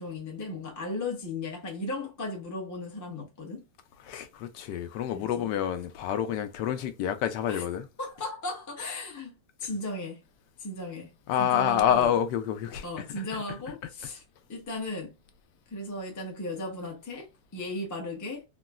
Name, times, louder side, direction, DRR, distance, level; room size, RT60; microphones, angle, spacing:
voice 1, 0.0-3.6 5.1-5.5 7.5-7.7 8.0-10.2 10.6-11.1 11.4-12.1 12.8-14.2 14.5-15.2 15.7-18.4, left 2 dB, 20° left, 0.4 m, -36 dB
voice 2, 4.0-7.9 11.3-13.4, left 10 dB, 80° left, 1.2 m, -28 dB
3.8 x 2.1 x 2.3 m
omnidirectional pair, 1.9 m